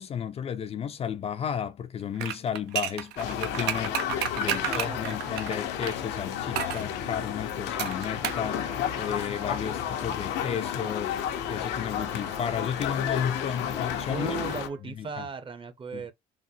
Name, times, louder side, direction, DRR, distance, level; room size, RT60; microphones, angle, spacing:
voice 1, 0.0-8.7 9.0-11.2 11.5-14.4 14.9-15.3 15.9-16.0, left 8 dB, 35° left, 0.4 m, -33 dB
sound 1, 2.2-6.0 6.6-6.9 7.8-8.5 8.7-8.8, right 11 dB, 85° right, 0.5 m, -31 dB
sound 2, 3.2-14.7, left 9 dB, 90° left, 0.7 m, -32 dB
voice 2, 4.5-5.4 14.1-16.1, right 5 dB, 30° right, 0.7 m, -37 dB
Trumpet, 8.2-14.9, right 6 dB, 50° right, 1.0 m, -49 dB
3.9 x 2.0 x 2.7 m
cardioid pair, 110°, 17 cm